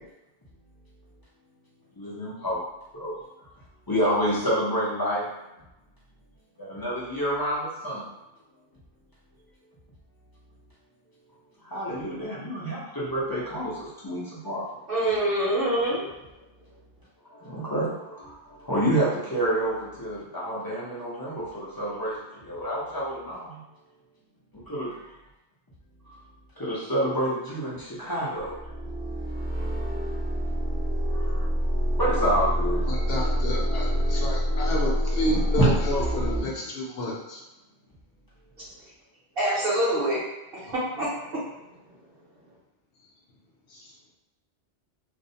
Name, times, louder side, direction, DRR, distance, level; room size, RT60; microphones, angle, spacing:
voice 1, 2.0-2.6 2.9-3.2 3.9-5.2 6.6-8.1 11.6-14.7 17.3-23.6 24.5-25.0 26.6-28.5 31.1-31.5 32.0-32.8 35.3-35.4, equal, 35° left, -8 dB, 0.4 m, -28 dB
voice 2, 14.9-16.1 39.4-40.2 40.7-41.1, right 1 dB, 60° right, -9 dB, 0.9 m, -25 dB
sound 1, 28.4-36.4, equal, 10° right, 0.6 m, -26 dB
voice 3, 32.9-37.4 39.4-39.7 43.7-43.9, left 1 dB, 65° left, -2 dB, 0.7 m, -31 dB
2.4 x 2.0 x 2.6 m, 0.95 s
omnidirectional pair, 1.2 m